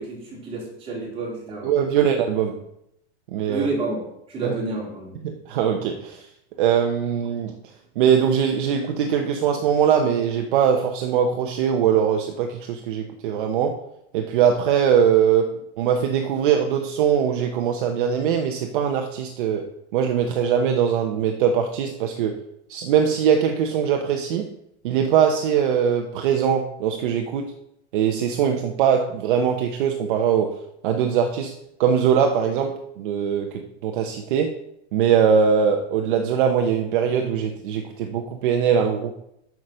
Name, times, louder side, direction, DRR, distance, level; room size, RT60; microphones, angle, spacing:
voice 1, 0.0-1.7 3.5-4.0 4.3-5.2, right 3 dB, 15° right, -4 dB, 3.3 m, -29 dB
voice 2, 1.6-2.6 3.3-3.7 4.4-4.5 5.2-6.2 6.6-7.6 8.0-13.8 14.1-19.7 19.9-22.4 22.7-24.5 24.8-27.5 27.9-30.5 30.8-31.5 31.8-34.5 34.9-39.2, right 8 dB, 50° right, 4 dB, 1.0 m, -21 dB
9.3 x 6.1 x 6.6 m, 0.79 s
supercardioid pair, 180°, 34 cm